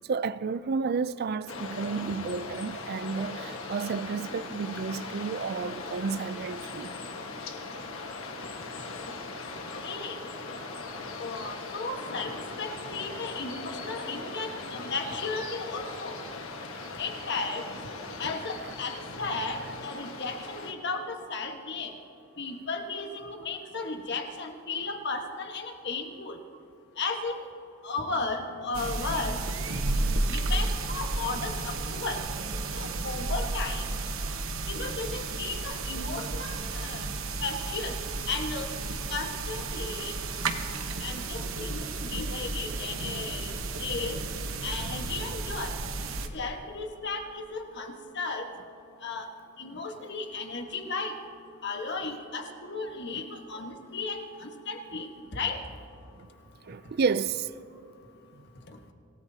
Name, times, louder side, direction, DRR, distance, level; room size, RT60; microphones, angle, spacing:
voice 1, 0.1-6.9 40.8-41.4 49.7-49.8 56.7-57.5, right 5 dB, 45° right, 0.4 m, -31 dB
sound 1, 1.5-20.7, left 3 dB, 75° left, 1.5 m, -39 dB
voice 2, 9.5-10.3 11.1-16.2 16.9-17.7 18.2-21.9 22.4-26.4 27.0-27.4 27.8-29.6 30.3-32.2 32.7-33.9 34.7-37.1 37.4-37.9 38.3-38.7 39.1-40.2 41.0-43.5 43.8-44.2 44.6-45.7 46.3-48.5 49.0-49.3 49.6-51.2 51.6-55.6 58.7-58.8, left 3 dB, 55° left, 1.4 m, -35 dB
sound 2, 28.7-46.3, right 3 dB, 65° right, 1.1 m, -32 dB
26.5 x 18.0 x 2.8 m
head